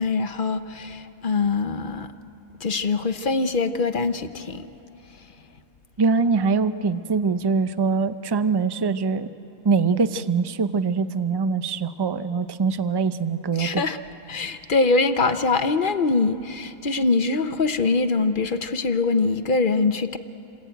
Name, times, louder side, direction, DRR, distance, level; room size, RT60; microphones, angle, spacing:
voice 1, 0.0-2.1 2.6-4.7 13.6-14.0 14.3-20.2, left 3 dB, 45° left, 9 dB, 0.8 m, -23 dB
voice 2, 6.0-9.3 9.6-13.8, right 4 dB, 35° right, 12 dB, 0.4 m, -23 dB
28.5 x 19.5 x 9.2 m, 2.9 s
omnidirectional pair, 1.5 m